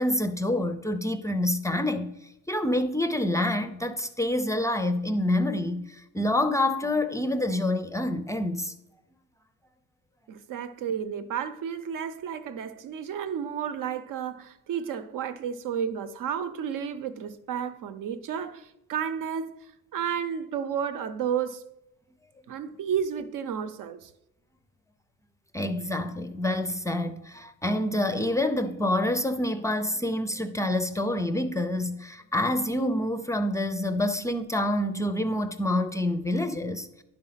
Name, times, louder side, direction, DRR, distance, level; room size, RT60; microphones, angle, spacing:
voice 1, 0.0-2.1 2.5-8.7 25.5-37.0, left 1 dB, 10° left, 0.4 m, -27 dB
voice 2, 10.3-19.6 19.9-21.6 22.5-24.1, right 8 dB, 70° right, 0.8 m, -32 dB
11.0 x 5.1 x 5.7 m
cardioid pair, 165°, 33 cm